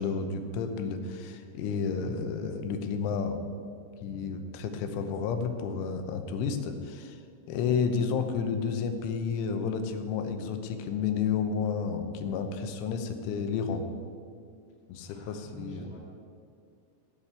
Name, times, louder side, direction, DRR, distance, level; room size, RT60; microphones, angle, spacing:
voice 1, 0.0-3.4 4.0-7.2 7.5-13.8 14.9-15.9, left 6 dB, 80° left, 7 dB, 3.3 m, -31 dB
voice 2, 15.1-16.1, right 1 dB, 30° left, -9 dB, 2.0 m, -48 dB
15.5 x 5.8 x 8.1 m, 2.2 s
omnidirectional pair, 5.5 m